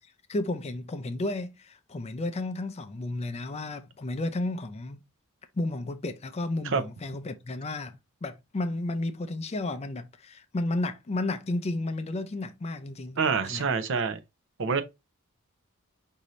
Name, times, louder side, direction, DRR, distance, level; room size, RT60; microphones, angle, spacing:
voice 1, 0.3-5.0 5.5-13.2 13.4-13.8, left 2 dB, 30° left, 0.4 m, -32 dB
voice 2, 13.2-14.2 14.6-14.8, right 5 dB, 65° right, 0.6 m, -26 dB
5.2 x 2.7 x 3.0 m
head